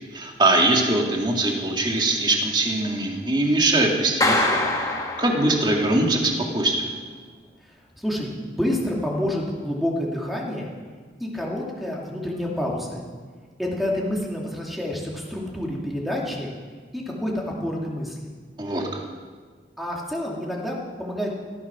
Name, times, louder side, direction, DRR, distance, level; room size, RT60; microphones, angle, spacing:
voice 1, 0.1-4.6 5.2-6.9 18.6-19.0, right 2 dB, 25° right, 1 dB, 2.2 m, -22 dB
Clapping, 4.2-5.9, left 2 dB, 20° left, 2.0 m, -24 dB
voice 2, 8.0-10.7 11.2-13.0 13.6-16.5 16.9-18.2 19.8-21.3, left 1 dB, ahead, -2 dB, 2.5 m, -28 dB
18.0 x 13.5 x 6.1 m, 1.6 s
head